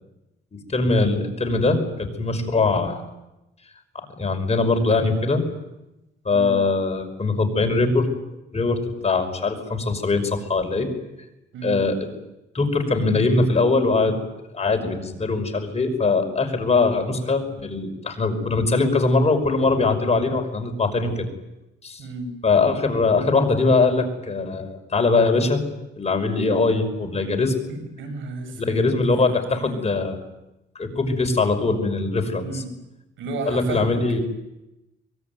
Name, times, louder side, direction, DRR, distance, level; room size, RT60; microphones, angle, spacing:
voice 1, 0.5-3.1 4.2-5.4 6.2-8.1 8.5-10.9 11.6-12.1 12.5-14.2 14.5-21.3 21.8-22.0 22.4-25.6 26.0-27.6 28.5-30.2 30.8-32.6 33.5-34.2, left 3 dB, 35° left, 6 dB, 5.6 m, -21 dB
voice 2, 22.0-22.3 27.7-29.9 32.4-32.7 33.2-34.0, right 2 dB, 80° right, 6 dB, 7.7 m, -33 dB
24.0 x 23.0 x 9.4 m, 0.95 s
cardioid pair, 90°, 20 cm